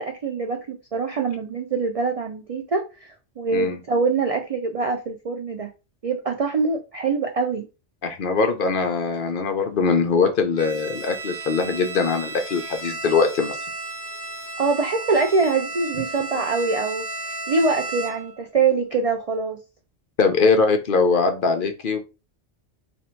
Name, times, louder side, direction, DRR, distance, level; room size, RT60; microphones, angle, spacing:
voice 1, 0.0-5.7 6.0-7.7 14.6-19.6, right 4 dB, 65° right, 0.3 m, -24 dB
voice 2, 8.0-13.6 20.2-22.0, left 4 dB, 55° left, 0.7 m, -21 dB
Bowed string instrument, 10.6-18.4, right 2 dB, 40° right, 1.1 m, -34 dB
2.8 x 2.6 x 4.3 m
omnidirectional pair, 1.2 m